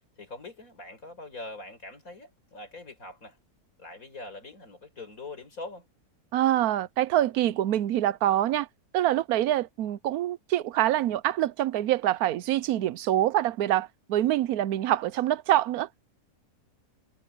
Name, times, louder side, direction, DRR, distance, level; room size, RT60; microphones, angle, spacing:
voice 1, 0.2-3.4 3.8-5.9, left 2 dB, 60° left, 5.4 m, -43 dB
voice 2, 6.3-8.7 8.9-15.9, right 13 dB, 75° right, 1.1 m, -25 dB
omnidirectional pair, 1.7 m